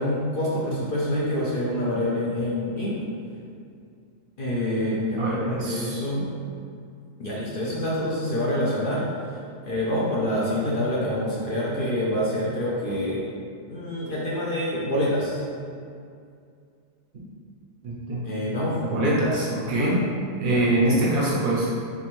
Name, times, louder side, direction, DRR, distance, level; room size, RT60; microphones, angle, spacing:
voice 1, 0.0-3.0 4.4-6.2 7.2-9.4 9.6-13.2 13.7-15.4 18.2-19.9 20.4-21.1, left 1 dB, 55° left, -6 dB, 0.6 m, -26 dB
voice 2, 5.2-6.2 17.8-18.2 18.9-19.9 20.4-21.7, right 1 dB, 80° right, -7 dB, 1.4 m, -24 dB
4.1 x 3.5 x 3.0 m, 2.4 s
omnidirectional pair, 1.4 m